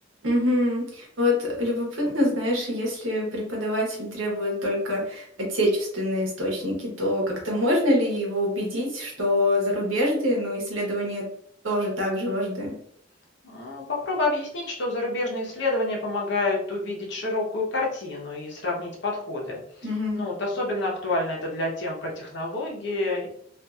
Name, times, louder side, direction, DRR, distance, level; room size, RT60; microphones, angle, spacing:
voice 1, 0.2-11.3 11.6-12.7 19.8-20.2, left 1 dB, 80° right, -2 dB, 1.0 m, -25 dB
voice 2, 13.4-19.6 20.1-23.3, left 2 dB, 60° left, -3 dB, 0.8 m, -28 dB
2.6 x 2.5 x 2.3 m, 0.65 s
head